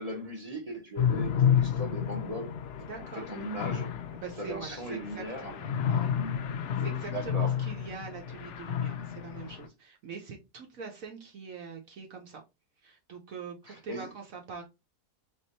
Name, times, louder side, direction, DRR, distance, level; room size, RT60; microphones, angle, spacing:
voice 1, 0.0-2.6 3.1-4.0 4.4-5.6 6.7-7.6 9.4-9.6 13.6-14.1, right 1 dB, 30° right, 0.9 m, -38 dB
sound 1, 1.0-9.7, left 8 dB, 65° left, 0.7 m, -31 dB
voice 2, 2.8-3.3 4.1-6.1 6.8-12.4 12.8-14.6, right 5 dB, 60° right, 1.2 m, -43 dB
3.6 x 3.0 x 4.0 m
omnidirectional pair, 1.7 m